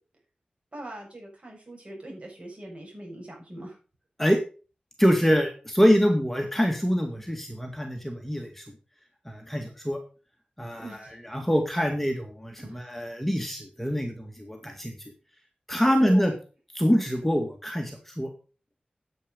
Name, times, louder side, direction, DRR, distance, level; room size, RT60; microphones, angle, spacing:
voice 1, 0.7-3.8 10.8-11.1 12.6-13.1 15.8-16.3, right 1 dB, 40° right, 0 dB, 7.1 m, -40 dB
voice 2, 5.0-8.6 9.3-10.0 10.6-14.9 15.7-16.3 16.7-18.3, equal, 5° left, 3 dB, 2.1 m, -25 dB
9.9 x 8.8 x 5.4 m, 0.35 s
wide cardioid pair, 95°, 3 cm